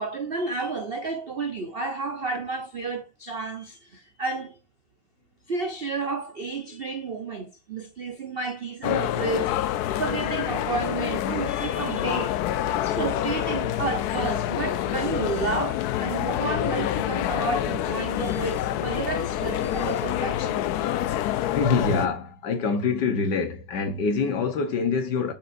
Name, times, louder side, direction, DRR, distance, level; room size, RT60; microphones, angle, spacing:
voice 1, 0.0-4.6 5.5-12.4 12.8-20.6, right 4 dB, 70° right, 0.5 m, -31 dB
sound 1, 8.8-22.1, left 12 dB, 90° left, 0.8 m, -27 dB
voice 2, 21.5-25.3, left 4 dB, 60° left, 1.6 m, -25 dB
7.8 x 4.8 x 2.6 m
omnidirectional pair, 2.3 m